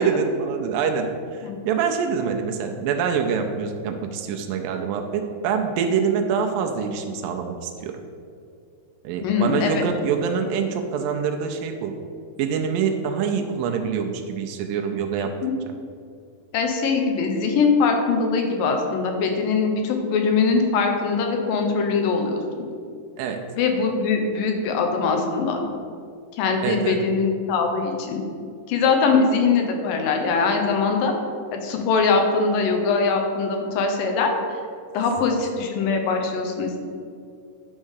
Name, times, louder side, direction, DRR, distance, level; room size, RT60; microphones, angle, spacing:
voice 1, 0.0-8.0 9.0-11.9 12.4-15.3 23.2-23.4 26.6-27.0, right 6 dB, 90° right, 4 dB, 2.4 m, -25 dB
voice 2, 9.2-9.8 15.2-15.5 16.5-22.4 23.6-25.7 26.3-28.2 28.7-31.1 31.5-34.3 34.9-36.8, left 4 dB, 85° left, 3 dB, 2.7 m, -22 dB
10.5 x 3.7 x 6.4 m, 2.3 s
omnidirectional pair, 3.9 m